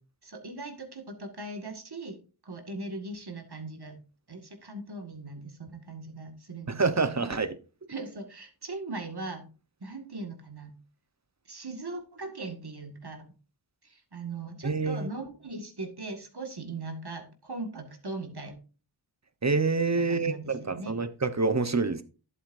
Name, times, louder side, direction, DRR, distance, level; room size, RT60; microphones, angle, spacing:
voice 1, 0.2-2.2 2.4-4.0 4.3-7.3 7.9-9.5 9.8-10.7 11.5-13.3 13.8-18.6 19.9-21.0, right 2 dB, 55° right, 2.1 m, -39 dB
voice 2, 6.8-7.6 14.6-15.1 19.4-22.0, right 4 dB, 35° right, 1.1 m, -27 dB
11.0 x 8.2 x 2.6 m
wide cardioid pair, 50°, 48 cm